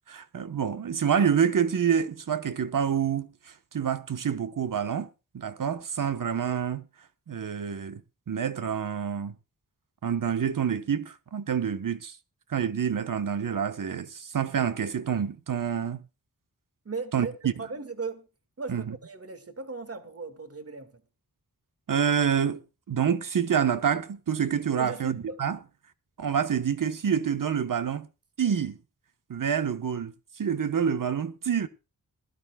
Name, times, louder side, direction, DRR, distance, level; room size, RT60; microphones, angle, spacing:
voice 1, 0.1-3.3 3.7-5.1 5.3-6.8 7.3-8.0 8.3-9.3 10.0-12.2 12.5-16.0 17.1-17.5 18.7-19.0 21.9-22.6 22.9-25.6 26.2-28.1 28.4-28.8 29.3-31.7, right 7 dB, 65° right, 1.0 m, -27 dB
voice 2, 16.8-18.3 18.6-20.9 24.8-25.4, right 4 dB, 40° right, 1.7 m, -37 dB
21.0 x 12.5 x 2.2 m
wide cardioid pair, 70°, 35 cm